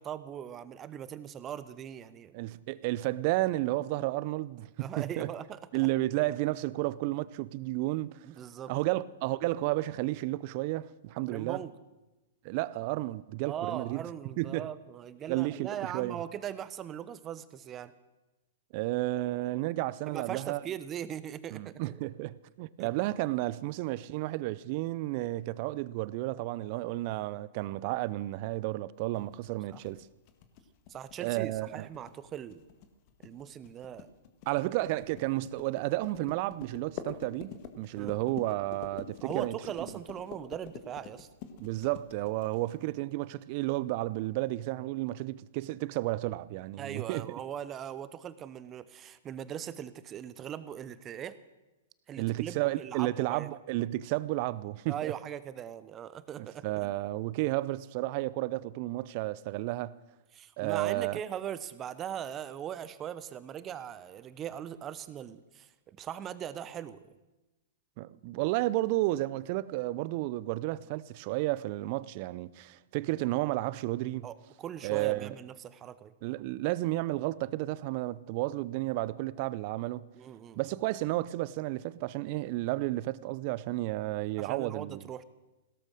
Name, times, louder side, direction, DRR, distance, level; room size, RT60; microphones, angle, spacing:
voice 1, 0.0-2.3 4.8-5.6 8.2-8.7 11.3-11.7 13.4-17.9 20.1-21.8 22.8-22.9 29.7-29.8 30.9-32.6 33.2-34.1 37.9-38.2 39.2-41.3 46.8-51.4 52.1-53.5 54.9-56.9 60.3-67.2 74.2-76.1 80.1-80.6 84.4-85.2, right 9 dB, 25° right, 0.9 m, -40 dB
voice 2, 2.3-5.3 5.7-8.2 8.7-11.6 12.4-14.1 14.4-14.7 15.3-16.2 18.7-20.6 21.5-30.0 31.2-31.9 34.5-39.5 41.6-47.3 52.2-55.1 56.4-59.9 60.6-61.2 68.0-74.3 74.8-75.3 76.2-80.0 80.6-85.0, right 18 dB, 45° right, 0.6 m, -32 dB
sound 1, 29.1-42.9, left 7 dB, 45° left, 1.7 m, -46 dB
17.0 x 13.0 x 6.4 m
hypercardioid pair, 115°, 0 cm